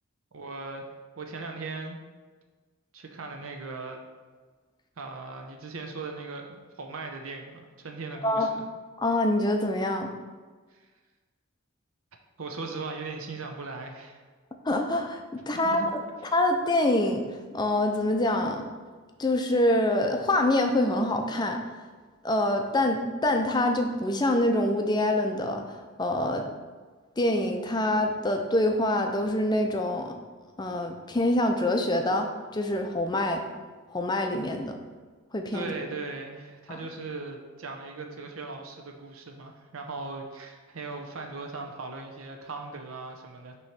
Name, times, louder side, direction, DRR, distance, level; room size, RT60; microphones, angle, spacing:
voice 1, 0.3-0.9 1.2-2.0 2.9-4.0 5.0-8.6 10.7-10.8 12.4-14.2 15.6-15.9 35.5-43.5, right 3 dB, 70° right, 3 dB, 0.6 m, -38 dB
voice 2, 9.0-10.1 14.6-16.0 16.3-17.2 17.5-18.6 19.2-21.6 22.2-26.5 27.2-30.1 30.6-33.4 33.9-34.8 35.3-35.7 36.7-36.8, left 1 dB, 20° left, 5 dB, 0.5 m, -25 dB
6.2 x 3.1 x 5.7 m, 1.4 s
head